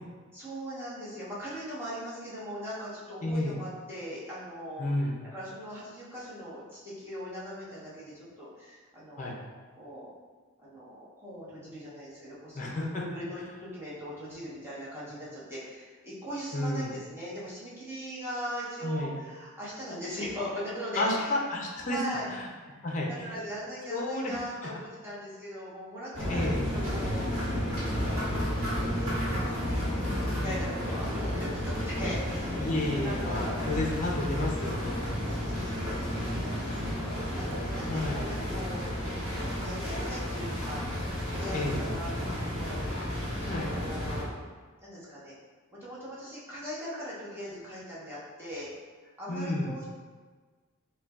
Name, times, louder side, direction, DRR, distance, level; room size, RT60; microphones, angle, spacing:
voice 1, 0.3-9.3 9.7-10.1 10.6-21.4 21.9-22.3 22.7-22.8 23.0-27.2 27.8-28.2 28.6-33.9 35.1-39.1 39.6-40.8 41.4-42.8 43.7-44.3 44.8-45.4 45.7-48.7 49.2-49.8, equal, 10° right, -9 dB, 1.1 m, -40 dB
voice 2, 3.2-3.6 4.8-5.2 9.2-9.3 12.5-13.0 16.5-16.9 18.8-19.1 21.0-22.0 22.3-22.5 22.8-23.3 23.9-24.7 26.3-26.6 32.6-35.1 37.9-38.2 41.5-41.8 43.5-43.7 49.3-49.7, left 2 dB, 35° left, -1 dB, 0.5 m, -31 dB
sound 1, 26.1-44.2, equal, 30° right, 1.3 m, -32 dB
6.5 x 2.2 x 2.3 m, 1.4 s
head